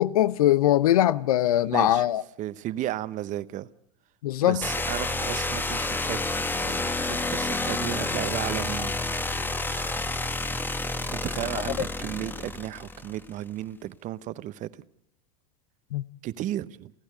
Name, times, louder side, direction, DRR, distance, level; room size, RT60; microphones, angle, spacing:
voice 1, 0.0-2.2 4.2-4.6 15.9-16.0, left 13 dB, 75° left, 0.7 m, -21 dB
voice 2, 1.6-2.0 2.4-3.7 4.4-6.2 6.6-9.0 11.2-14.7 16.2-16.9, right 13 dB, 45° right, 0.9 m, -34 dB
sound 1, 4.6-13.3, left 2 dB, 10° left, 1.3 m, -29 dB
29.5 x 12.0 x 8.0 m
hypercardioid pair, 90°, 19 cm